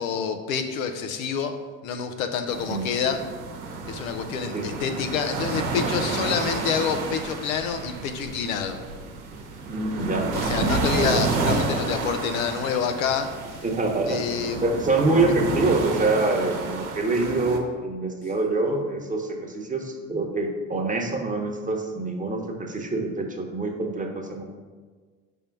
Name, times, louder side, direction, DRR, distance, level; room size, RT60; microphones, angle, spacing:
voice 1, 0.0-1.5 1.8-3.2 3.9-8.8 10.3-13.3 14.1-14.6, left 6 dB, 85° left, 6 dB, 0.7 m, -27 dB
sound 1, 2.5-17.6, right 3 dB, 80° right, 1.0 m, -30 dB
voice 2, 9.6-10.3 13.6-24.4, right 2 dB, 20° right, 2 dB, 1.0 m, -25 dB
5.4 x 3.7 x 5.9 m, 1.4 s
hypercardioid pair, 65°, 40 cm